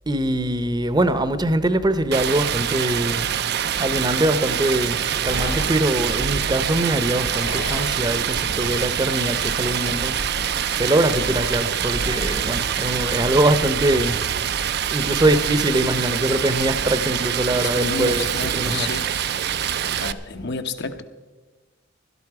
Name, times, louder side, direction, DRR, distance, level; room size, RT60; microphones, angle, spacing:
voice 1, 0.1-3.3 3.8-5.0 5.2-10.4 10.7-14.2 14.9-18.3 18.5-19.0, right 1 dB, 20° right, 0.8 m, -22 dB
Stream, 2.1-20.1, right 9 dB, 60° right, 0.5 m, -25 dB
sound 1, 5.2-16.7, left 1 dB, 85° left, 3.6 m, -35 dB
voice 2, 17.6-19.1 19.5-19.7 20.0-21.0, left 3 dB, 60° left, 1.0 m, -31 dB
16.5 x 13.0 x 4.8 m
head